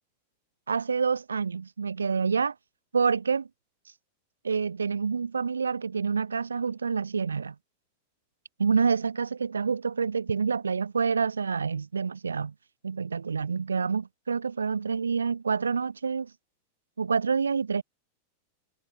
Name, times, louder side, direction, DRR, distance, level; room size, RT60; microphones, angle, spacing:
voice 1, 0.7-2.5 2.9-3.5 4.4-7.5 8.6-12.5 12.8-16.3 17.0-17.8, right 5 dB, 75° right, 0.6 m, -27 dB
figure-of-eight pair, 90°, 0 cm